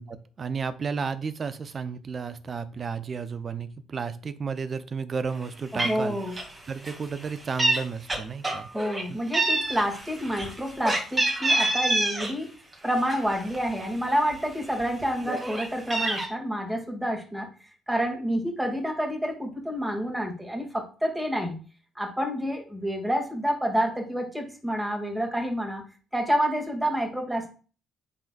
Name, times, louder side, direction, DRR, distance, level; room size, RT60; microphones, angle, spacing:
voice 1, 0.0-6.2 6.7-8.7 9.1-9.2 15.2-15.4, right 5 dB, 45° right, 13 dB, 0.7 m, -33 dB
Meow, 5.4-5.5 5.8-6.0 6.3-6.6 6.8-7.8 8.1-9.0 9.3-12.3 12.7-13.9 14.3-14.4 14.7-16.3, right 2 dB, 30° right, 2.3 m, -27 dB
voice 2, 5.7-6.4 8.7-12.5 12.8-17.5 17.9-21.5 22.0-25.8 26.1-27.5, equal, 10° right, 2 dB, 2.3 m, -28 dB
9.9 x 4.0 x 2.4 m, 0.37 s
hypercardioid pair, 55°, 0 cm